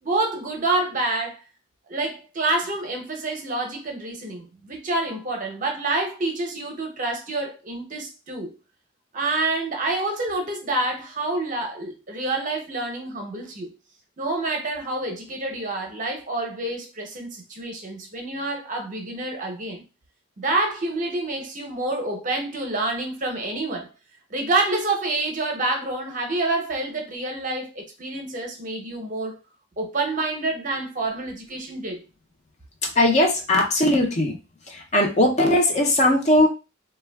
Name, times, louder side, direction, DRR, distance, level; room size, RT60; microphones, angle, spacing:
voice 1, 0.0-1.4 1.9-8.5 9.1-13.7 14.2-19.8 20.4-23.9 24.3-29.4 29.8-32.0, right 2 dB, 40° right, 0.6 m, -27 dB
voice 2, 32.8-34.4 34.7-36.5, left 1 dB, 35° left, 0.5 m, -19 dB
3.3 x 2.2 x 2.2 m
head